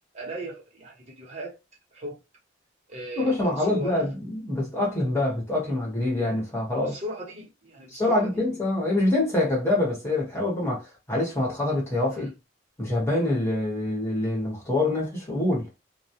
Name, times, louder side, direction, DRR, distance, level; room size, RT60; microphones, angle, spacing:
voice 1, 0.1-1.6 1.9-2.2 2.9-4.0 6.8-8.4 12.1-12.3, right 1 dB, 35° right, 0.9 m, -37 dB
voice 2, 3.2-7.0 7.9-12.3 12.8-15.7, left 2 dB, 15° left, 1.0 m, -25 dB
2.2 x 2.1 x 2.7 m
head